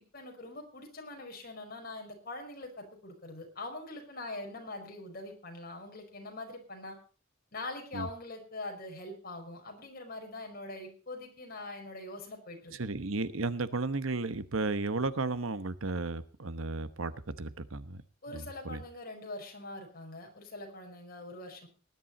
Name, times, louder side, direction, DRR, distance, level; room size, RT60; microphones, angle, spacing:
voice 1, 0.0-7.0 7.5-12.7 18.2-21.7, left 2 dB, 45° left, 3 dB, 5.1 m, -43 dB
voice 2, 12.8-17.1 17.4-18.0 18.3-18.8, right 3 dB, 70° right, 14 dB, 1.1 m, -34 dB
19.0 x 11.0 x 4.2 m, 0.37 s
head